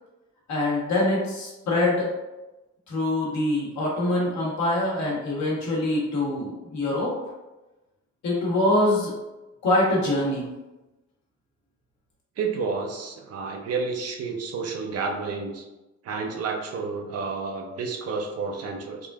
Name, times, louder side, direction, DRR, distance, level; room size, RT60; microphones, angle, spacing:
voice 1, 0.5-2.1 2.9-7.1 8.2-9.1 9.6-10.5, left 1 dB, 65° left, -4 dB, 1.3 m, -24 dB
voice 2, 12.4-15.6 16.0-19.0, right 4 dB, 55° right, 2 dB, 0.6 m, -30 dB
3.6 x 2.5 x 2.3 m, 1.0 s
cardioid pair, 90°, 30 cm